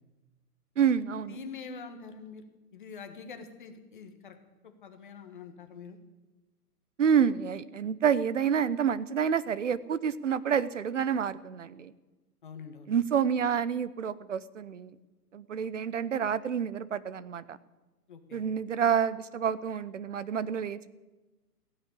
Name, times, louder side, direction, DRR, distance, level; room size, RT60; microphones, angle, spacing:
voice 1, 0.8-1.4 7.0-11.9 12.9-14.9 15.3-17.6 18.3-20.9, right 7 dB, 50° right, 17 dB, 0.8 m, -28 dB
voice 2, 1.3-2.4 2.7-4.4 4.6-6.0 12.4-12.9 18.1-18.4, left 5 dB, 30° left, 6 dB, 1.5 m, -45 dB
15.5 x 10.5 x 8.3 m, 1.1 s
hypercardioid pair, 175°, 47 cm